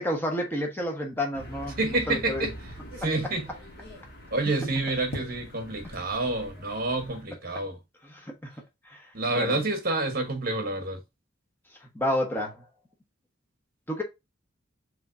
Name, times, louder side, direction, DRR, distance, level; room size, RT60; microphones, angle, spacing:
voice 1, 0.0-2.5 8.0-8.5 8.8-9.1 9.3-9.6 11.9-12.6 13.9-14.0, left 1 dB, 10° left, 1.1 m, -30 dB
sound 1, 1.3-7.2, equal, 50° left, 1.7 m, -43 dB
voice 2, 1.8-2.6 3.0-3.5 4.3-7.8 9.1-11.0, right 2 dB, 50° right, 1.2 m, -28 dB
5.1 x 3.9 x 2.6 m
head